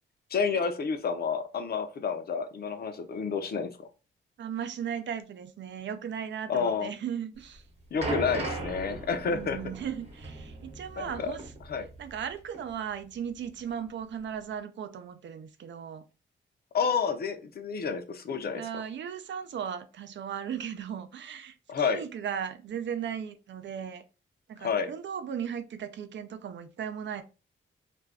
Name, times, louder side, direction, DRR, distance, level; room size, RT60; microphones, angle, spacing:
voice 1, 0.3-3.9 6.5-6.9 7.9-9.6 11.0-11.4 11.7-11.9 16.7-18.6 21.7-22.0 24.6-24.9, left 5 dB, 50° left, 0.5 m, -30 dB
voice 2, 4.4-7.6 9.2-11.4 12.0-16.0 18.6-24.0 24.5-27.2, right 8 dB, 60° right, 0.4 m, -37 dB
sound 1, 7.4-12.3 12.5-12.7 13.4-13.5, right 2 dB, 30° right, 0.9 m, -37 dB
2.5 x 2.2 x 3.4 m
wide cardioid pair, 125°, 21 cm